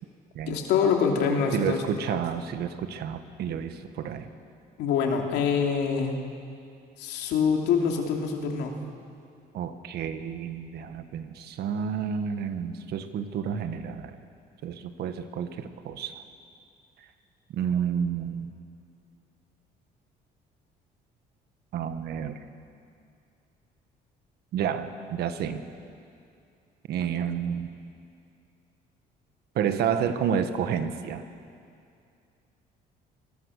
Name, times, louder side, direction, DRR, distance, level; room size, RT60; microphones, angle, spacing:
voice 1, 0.5-1.8 2.1-2.2 4.8-6.1 7.0-8.7, left 6 dB, 85° left, 2 dB, 3.0 m, -25 dB
voice 2, 1.5-4.3 9.5-14.1 14.6-16.2 17.5-18.5 21.7-22.4 24.5-25.6 26.9-27.7 29.5-31.2, right 8 dB, 70° right, 9 dB, 1.6 m, -30 dB
26.0 x 21.0 x 6.6 m, 2.4 s
cardioid pair, 110°, 17 cm